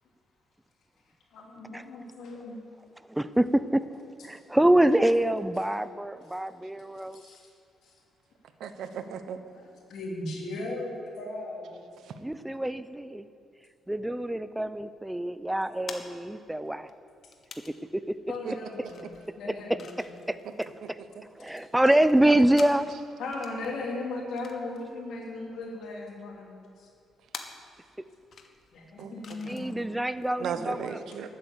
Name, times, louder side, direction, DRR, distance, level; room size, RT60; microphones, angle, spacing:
voice 1, 1.3-2.5 4.3-4.4 6.9-7.5 7.8-7.9 9.5-11.9 18.3-20.2 21.4-21.7 23.2-26.9 28.7-29.8, left 2 dB, 75° left, -1 dB, 3.3 m, -38 dB
voice 2, 3.1-3.9 4.2-7.2 12.2-13.3 13.9-16.9 17.7-18.1 18.5-18.6 20.0-20.7 21.4-22.9 29.5-31.0, right 1 dB, 5° right, 13 dB, 0.6 m, -25 dB
voice 3, 8.6-9.4 12.1-12.2 18.4-18.5 19.0-19.1 21.2-21.3 29.0-29.5 30.4-31.3, right 7 dB, 75° right, 9 dB, 1.0 m, -36 dB
sound 1, 13.9-30.6, left 5 dB, 55° left, 1.4 m, -50 dB
12.5 x 8.8 x 8.4 m, 2.5 s
cardioid pair, 90°, 0 cm